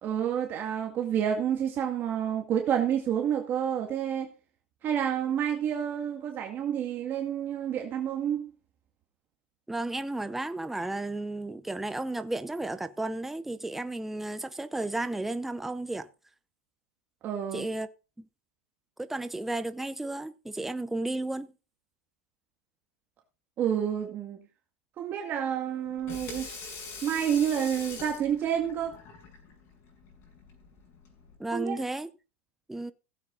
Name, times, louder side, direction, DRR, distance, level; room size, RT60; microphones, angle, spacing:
voice 1, 0.0-4.3 4.8-8.5 17.2-17.7 23.6-24.4 25.0-26.5 27.0-29.0 31.5-31.8, right 9 dB, 30° right, 2.1 m, -29 dB
voice 2, 9.7-16.1 17.5-17.9 18.2-18.3 19.0-21.5 31.4-32.1 32.7-32.9, right 2 dB, 5° right, 0.7 m, -33 dB
Water tap faucet / Sink (filling or washing), 25.9-31.4, left 4 dB, 40° left, 6.7 m, -44 dB
16.0 x 8.6 x 4.0 m
supercardioid pair, 140°, 7 cm